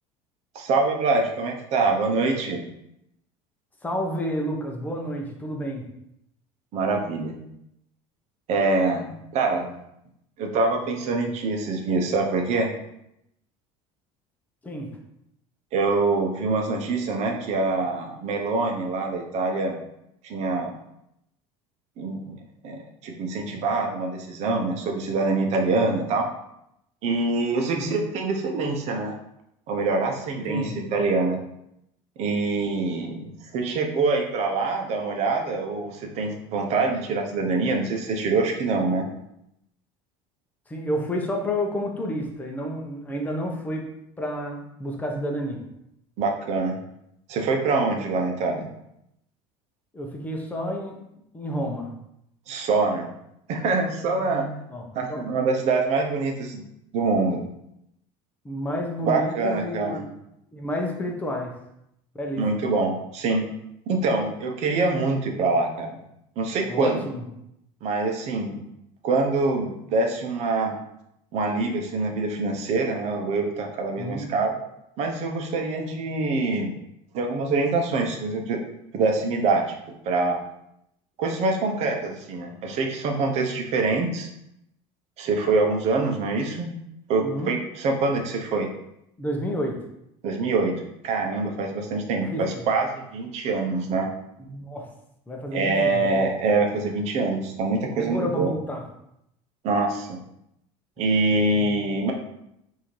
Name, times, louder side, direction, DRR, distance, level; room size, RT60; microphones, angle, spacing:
voice 1, 0.5-2.6 6.7-7.4 8.5-9.7 10.4-12.7 15.7-19.7 20.2-20.8 22.0-22.4 22.6-26.3 27.0-29.1 29.7-31.4 32.2-39.1 46.2-46.8 47.3-48.7 52.5-53.1 53.5-54.6 54.9-56.6 56.9-57.4 59.0-60.0 62.4-63.5 63.9-65.9 66.4-67.0 67.8-68.6 69.0-70.7 71.3-74.5 75.0-76.8 77.1-78.6 78.9-79.6 80.0-80.4 81.2-84.3 85.2-86.7 87.1-88.7 90.2-90.7 91.0-94.1 95.5-98.5 99.6-100.2 101.0-102.1, right 3 dB, 55° right, 3 dB, 0.8 m, -25 dB
voice 2, 3.8-5.9 14.6-14.9 27.7-28.0 30.5-30.8 40.7-43.9 44.2-45.6 49.9-51.0 51.3-51.9 54.7-55.2 58.4-60.1 60.5-61.5 62.2-62.4 66.7-67.2 74.0-74.3 87.2-87.5 89.2-89.8 92.2-92.7 94.4-94.9 95.3-96.2 97.9-98.8, equal, 10° left, 1 dB, 0.8 m, -30 dB
5.5 x 2.8 x 3.2 m, 0.80 s
cardioid pair, 130°, 14 cm